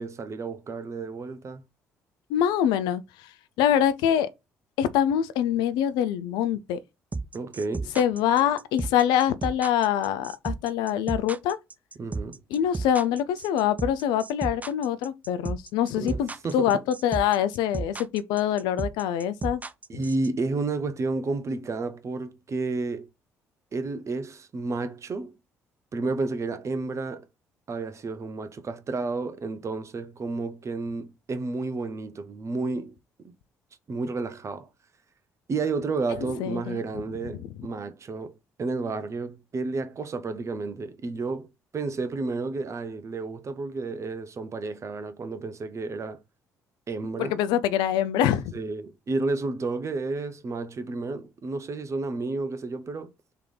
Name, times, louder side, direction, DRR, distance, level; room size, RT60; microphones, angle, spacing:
voice 1, 0.0-1.6 7.3-7.9 12.0-12.4 15.9-16.8 19.9-23.1 23.7-25.3 25.9-27.3 27.7-32.9 33.9-34.7 35.5-38.3 38.6-41.5 41.7-46.2 46.9-47.4 48.5-53.1, right 3 dB, 40° right, 0.8 m, -31 dB
voice 2, 2.3-3.0 3.6-4.3 4.8-6.8 8.0-11.6 12.5-19.6 19.9-20.0 36.4-36.8 47.2-48.5, left 10 dB, 70° left, 0.5 m, -24 dB
sound 1, 7.1-20.3, right 3 dB, 20° right, 0.4 m, -33 dB
3.5 x 3.2 x 3.8 m
hypercardioid pair, 50°, 8 cm